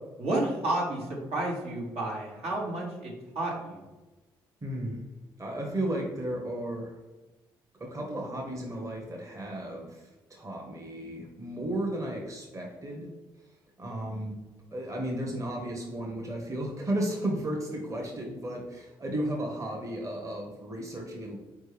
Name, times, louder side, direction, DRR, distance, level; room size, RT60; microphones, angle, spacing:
voice 1, 0.2-3.8, right 2 dB, 65° right, -4 dB, 1.4 m, -31 dB
voice 2, 4.6-5.0 5.4-7.0 7.8-13.1 13.8-14.3 14.7-21.4, right 1 dB, 30° right, -1 dB, 1.1 m, -34 dB
4.1 x 3.4 x 3.3 m, 1.1 s
hypercardioid pair, 50°, 11 cm